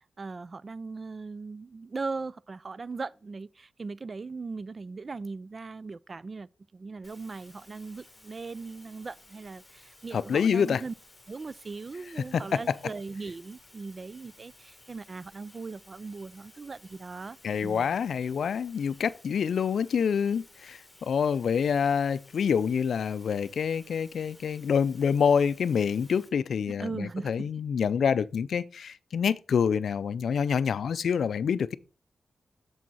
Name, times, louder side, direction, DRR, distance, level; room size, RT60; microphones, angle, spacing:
voice 1, 0.0-6.5 6.7-10.9 11.3-17.4 17.6-17.9 26.7-27.5, right 4 dB, 40° right, 0.3 m, -39 dB
sound 1, 7.0-26.3, left 2 dB, 10° left, 3.4 m, -56 dB
voice 2, 10.1-10.8 12.3-12.8 17.4-31.8, left 7 dB, 80° left, 0.4 m, -27 dB
7.6 x 7.0 x 4.0 m
wide cardioid pair, 90°, 0 cm